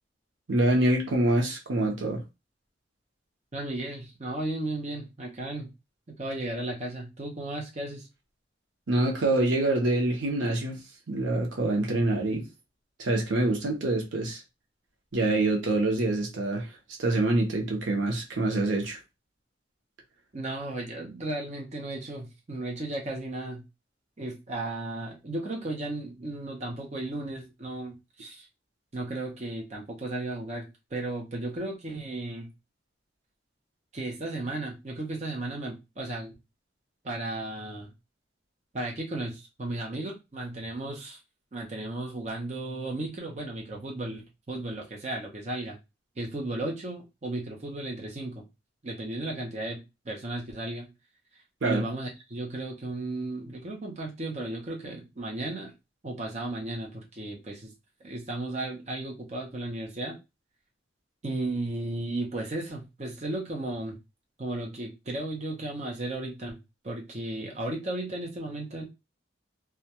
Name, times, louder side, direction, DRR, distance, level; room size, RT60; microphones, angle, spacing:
voice 1, 0.5-2.2 8.9-10.8 11.1-12.5 13.0-14.4 15.1-16.7 17.0-19.0 51.6-51.8, right 2 dB, 85° right, 0.8 m, -25 dB
voice 2, 3.5-5.7 6.1-8.1 20.3-23.6 24.2-28.5 28.9-32.5 33.9-36.3 37.0-37.9 38.7-41.2 41.5-45.8 46.2-48.4 48.8-50.9 51.6-55.7 56.0-57.7 58.0-60.2 61.2-64.0 64.4-66.6 66.8-68.8, right 2 dB, 35° right, 0.6 m, -35 dB
2.3 x 2.2 x 2.8 m
head